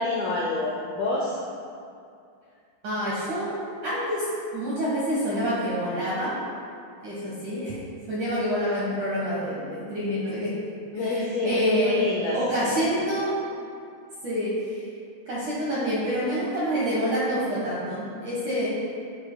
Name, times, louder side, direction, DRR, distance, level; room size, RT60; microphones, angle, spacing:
voice 1, 0.0-1.4 10.9-11.6 11.8-13.0, left 2 dB, 90° left, -4 dB, 2.0 m, -28 dB
voice 2, 2.8-3.5 3.8-4.3 4.5-6.3 7.0-7.8 8.1-10.5 10.9-12.0 12.3-13.3 14.2-14.8 15.3-18.7, equal, 70° right, -8 dB, 1.9 m, -27 dB
13.0 x 9.2 x 2.2 m, 2.4 s
omnidirectional pair, 5.7 m